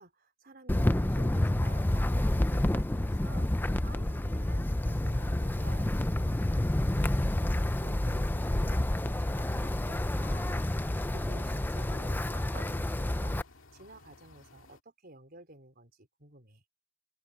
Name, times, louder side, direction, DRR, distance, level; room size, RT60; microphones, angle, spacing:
voice 1, 0.0-7.1 7.8-10.6 11.1-13.4 13.7-16.6, right 2 dB, 45° right, 4.5 m, -52 dB
Wind, 0.7-13.4, left 1 dB, 10° left, 0.4 m, -29 dB
sound 1, 9.3-14.8, left 4 dB, 70° left, 2.1 m, -56 dB
open air
head